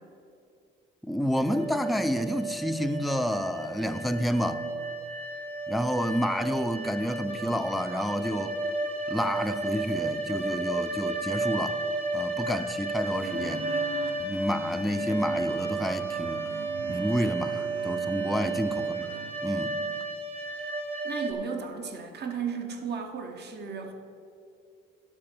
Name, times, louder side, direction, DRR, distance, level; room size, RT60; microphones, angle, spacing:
voice 1, 1.0-4.7 5.7-8.6 9.1-11.8 12.1-13.7 14.2-16.5 16.9-19.1 19.4-19.8, equal, ahead, 7 dB, 0.5 m, -29 dB
sound 1, 1.4-21.3, right 2 dB, 30° right, 1.3 m, -32 dB
sound 2, 13.2-19.3, right 7 dB, 80° right, 0.8 m, -43 dB
voice 2, 21.0-23.9, right 6 dB, 55° right, 4 dB, 1.2 m, -35 dB
11.5 x 4.1 x 7.9 m, 2.5 s
cardioid pair, 90°, 20 cm